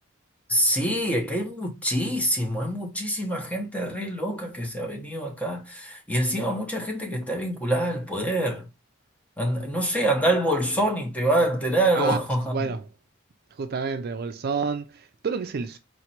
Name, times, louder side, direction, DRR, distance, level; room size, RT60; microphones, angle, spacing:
voice 1, 0.5-8.7 9.4-12.6, right 1 dB, 5° left, 0.9 m, -25 dB
voice 2, 12.5-12.9 13.6-15.8, right 5 dB, 50° right, 0.4 m, -29 dB
4.2 x 3.0 x 2.8 m
head